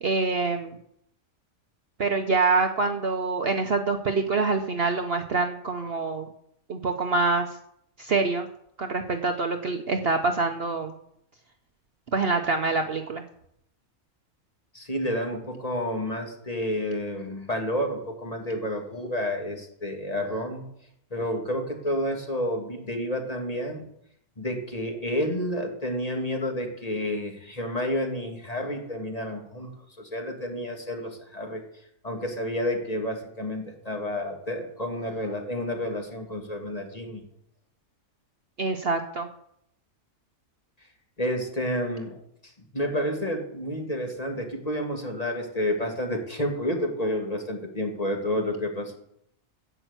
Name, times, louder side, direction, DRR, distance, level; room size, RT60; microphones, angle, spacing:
voice 1, 0.0-0.8 2.0-6.3 6.7-7.5 8.0-8.5 8.8-10.9 12.1-13.2 38.6-39.3, right 3 dB, 50° right, 6 dB, 0.9 m, -25 dB
voice 2, 14.7-20.6 21.1-23.9 24.4-29.7 30.0-31.6 32.0-37.2 41.2-42.2 42.7-49.0, left 1 dB, 25° left, 2 dB, 2.1 m, -30 dB
10.5 x 7.9 x 8.0 m, 0.72 s
omnidirectional pair, 1.5 m